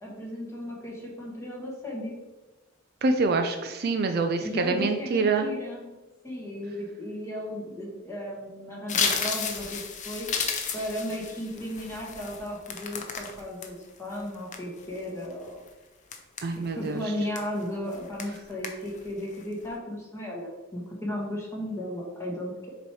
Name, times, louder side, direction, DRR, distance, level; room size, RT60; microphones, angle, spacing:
voice 1, 0.0-2.2 4.4-5.9 6.2-15.6 16.7-22.7, left 1 dB, 15° left, -4 dB, 1.6 m, -35 dB
voice 2, 3.0-5.5 16.4-17.0, right 3 dB, 50° right, 6 dB, 0.5 m, -26 dB
sound 1, 8.9-13.7 14.1-15.0 15.5-15.7 16.1-16.9 17.3-17.6 17.9-18.4 18.6-19.0 19.4-19.6, left 6 dB, 40° left, 0.7 m, -32 dB
6.7 x 3.1 x 4.7 m, 1.2 s
head